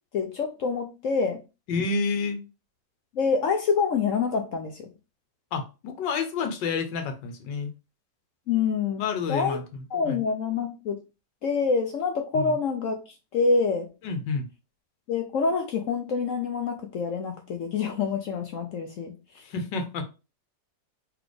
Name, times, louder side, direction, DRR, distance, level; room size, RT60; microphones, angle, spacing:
voice 1, 0.1-1.4 3.2-4.9 8.5-9.0 9.3-9.6 9.9-11.0 11.4-13.0 13.3-13.9 15.1-19.1, left 5 dB, 65° left, 0.8 m, -26 dB
voice 2, 1.7-2.4 5.5-7.7 9.0-9.6 10.0-10.2 12.3-12.5 14.0-14.5 19.4-20.0, left 4 dB, 85° left, 1.5 m, -29 dB
4.0 x 3.4 x 3.2 m
omnidirectional pair, 1.9 m